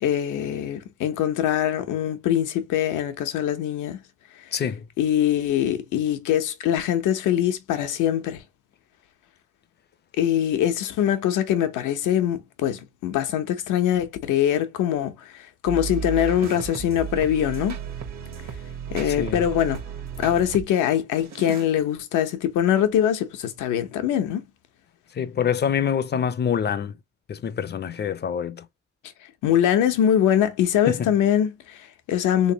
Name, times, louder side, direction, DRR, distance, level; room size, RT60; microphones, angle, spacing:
voice 1, 0.0-4.0 5.0-8.4 10.2-17.8 18.9-19.8 20.2-24.4 29.4-32.5, left 10 dB, 85° left, 0.8 m, -23 dB
voice 2, 4.5-4.8 19.1-19.4 25.1-26.9 27.3-28.6 30.9-31.1, left 8 dB, 35° left, 0.5 m, -26 dB
sound 1, 15.7-20.7 21.2-21.7, right 7 dB, 65° right, 1.1 m, -34 dB
3.5 x 3.2 x 2.7 m
cardioid pair, 90°, 30 cm